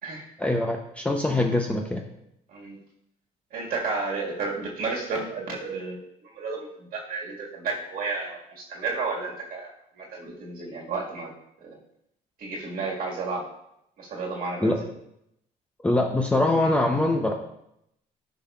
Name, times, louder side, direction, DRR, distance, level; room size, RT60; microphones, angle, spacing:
voice 1, 0.4-2.0 14.6-14.8 15.8-17.3, left 2 dB, 5° left, 1 dB, 0.6 m, -23 dB
voice 2, 3.5-11.3 11.6-11.8 12.4-13.4 14.0-14.9, right 4 dB, 60° right, -2 dB, 1.7 m, -32 dB
10.0 x 5.6 x 2.3 m, 0.78 s
cardioid pair, 110°, 17 cm